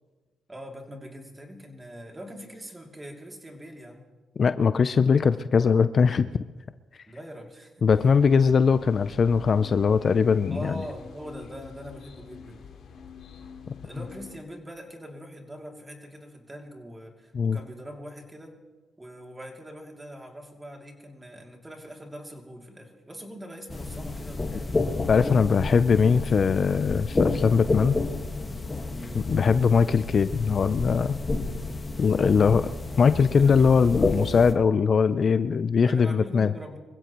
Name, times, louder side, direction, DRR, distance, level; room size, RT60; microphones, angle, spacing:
voice 1, 0.5-4.0 7.1-7.9 10.5-12.8 13.8-18.6 19.0-24.8 28.9-29.3 32.1-32.5 33.4-33.7 35.8-36.8, equal, 15° right, 2 dB, 2.7 m, -42 dB
voice 2, 4.4-6.3 7.8-10.7 17.3-17.6 25.1-28.0 29.1-31.2 32.0-32.7 33.0-36.5, left 5 dB, 45° left, 12 dB, 0.5 m, -21 dB
sound 1, 7.9-14.4, left 6 dB, 70° left, 2.4 m, -45 dB
sound 2, 23.7-34.5, left 3 dB, 25° left, 1.6 m, -30 dB
25.5 x 16.0 x 3.0 m, 1.3 s
cardioid pair, 90°, 0 cm